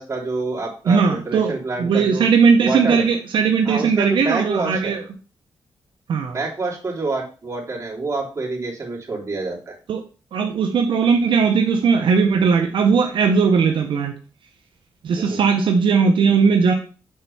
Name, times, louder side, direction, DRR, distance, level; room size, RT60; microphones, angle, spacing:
voice 1, 0.0-2.3 2.6-3.1 3.6-5.0 6.3-9.8 15.2-15.4, right 3 dB, 35° right, -3 dB, 3.2 m, -27 dB
voice 2, 0.9-1.5 1.8-5.0 6.1-6.4 9.9-10.0 10.3-14.1 15.0-16.7, right 5 dB, 75° right, 4 dB, 0.9 m, -18 dB
6.7 x 4.5 x 5.4 m, 0.37 s
cardioid pair, 100°, 8 cm